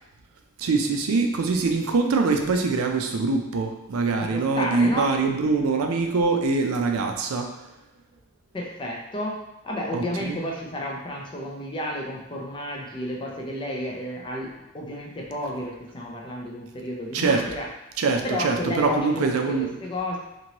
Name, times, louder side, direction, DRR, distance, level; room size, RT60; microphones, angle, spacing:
voice 1, 0.6-7.5 9.9-10.4 17.1-17.5 18.0-19.7, right 4 dB, 80° right, 4 dB, 0.4 m, -23 dB
voice 2, 4.2-5.2 8.5-9.4 9.6-17.7 18.2-20.2, left 1 dB, 25° left, -1 dB, 0.4 m, -31 dB
2.9 x 2.6 x 2.9 m, 0.89 s
head